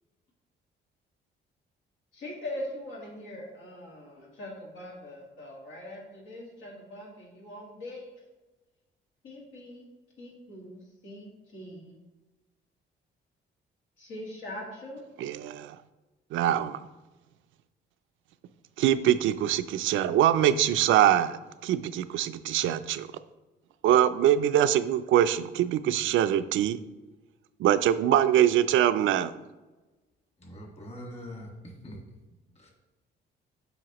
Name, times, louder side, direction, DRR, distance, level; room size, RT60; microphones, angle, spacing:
voice 1, 2.1-8.0 9.2-9.8 10.2-11.9 14.0-15.0, left 1 dB, 85° left, -2 dB, 1.9 m, -42 dB
voice 2, 15.2-15.8 16.3-16.8 18.8-21.4 21.6-23.1 23.8-26.8 27.6-29.3, right 11 dB, 80° right, 12 dB, 0.4 m, -23 dB
voice 3, 30.4-32.0 32.6-32.7, equal, 35° left, -1 dB, 1.9 m, -43 dB
7.8 x 4.9 x 3.0 m, 1.1 s
cardioid pair, 90°, 20 cm